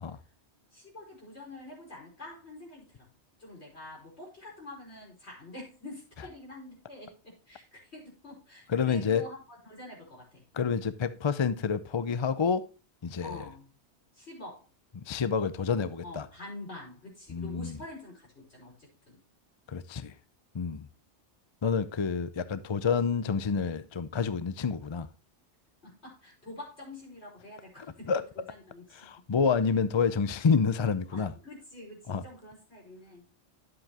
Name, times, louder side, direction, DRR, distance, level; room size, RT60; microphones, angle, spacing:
voice 1, 0.7-3.1 3.4-9.4 9.6-10.4 13.2-13.7 14.1-14.7 16.0-19.2 25.8-28.2 28.5-29.1 31.1-33.3, left 2 dB, 70° left, 5.5 m, -46 dB
voice 2, 8.7-9.3 10.5-12.6 13.0-13.4 15.0-16.3 17.3-17.8 19.7-20.1 20.5-20.9 21.6-25.1 28.1-28.2 28.9-31.3 32.1-32.2, left 6 dB, 40° left, 0.4 m, -28 dB
11.0 x 7.7 x 2.9 m
omnidirectional pair, 1.2 m